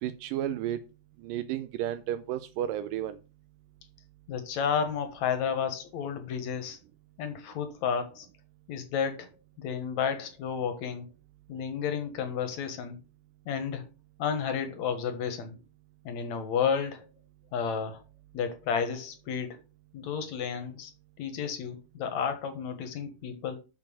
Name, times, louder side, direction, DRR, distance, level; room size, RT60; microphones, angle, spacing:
voice 1, 0.0-0.8 1.2-3.2, right 11 dB, 85° right, 2.4 m, -32 dB
voice 2, 4.3-6.8 7.2-8.3 8.7-9.3 9.6-11.1 11.5-13.0 13.5-13.9 14.2-15.6 16.0-17.1 17.5-18.0 18.3-19.6 19.9-20.9 21.2-23.6, left 7 dB, 60° left, 2.6 m, -31 dB
6.7 x 6.1 x 6.4 m
omnidirectional pair, 3.8 m